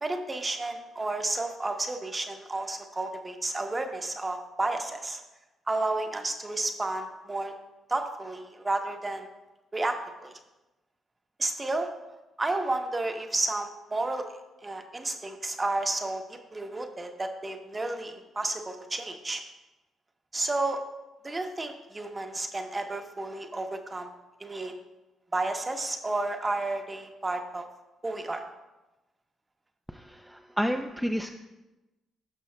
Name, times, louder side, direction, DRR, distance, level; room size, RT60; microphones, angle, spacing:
voice 1, 0.0-5.2 5.7-7.5 7.9-9.3 9.7-10.3 11.4-11.9 12.4-14.3 14.6-19.4 20.3-20.8 21.2-24.1 24.4-24.7 25.3-27.6 28.0-28.4, right 2 dB, 20° right, 5 dB, 0.8 m, -31 dB
voice 2, 29.9-31.3, equal, ahead, 4 dB, 0.4 m, -30 dB
12.0 x 6.0 x 2.2 m, 1.0 s
cardioid pair, 90°, 0 cm